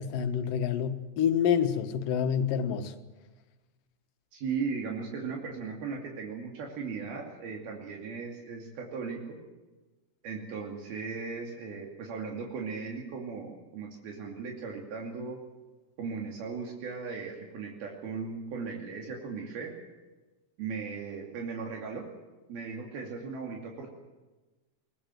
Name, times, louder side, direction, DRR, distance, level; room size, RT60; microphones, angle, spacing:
voice 1, 0.0-2.9, left 8 dB, 70° left, 8 dB, 2.8 m, -27 dB
voice 2, 4.3-9.4 10.2-15.4 16.0-19.7 20.6-22.1 22.5-23.9, right 5 dB, 75° right, 1 dB, 4.5 m, -37 dB
22.5 x 19.5 x 7.8 m, 1.2 s
omnidirectional pair, 4.3 m